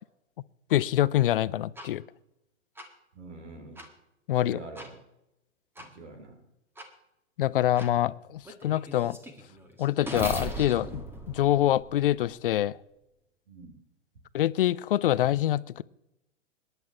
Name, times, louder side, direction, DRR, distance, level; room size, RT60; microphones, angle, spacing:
voice 1, 0.7-2.0 4.3-4.6 7.4-9.2 9.8-11.0 11.3-12.8 14.3-15.8, left 13 dB, 45° left, 19 dB, 0.5 m, -25 dB
sound 1, 1.8-1.9 2.8-2.9 3.8-3.9 4.8-4.9 5.8-5.9 6.8-6.9 7.8-7.9 8.4-12.3, right 1 dB, 5° right, 1.6 m, -38 dB
voice 2, 3.1-3.8 4.4-4.9 5.8-6.4 13.5-13.8, right 3 dB, 65° right, 4 dB, 3.7 m, -45 dB
26.0 x 11.0 x 3.0 m, 0.90 s
figure-of-eight pair, 105°, 38 cm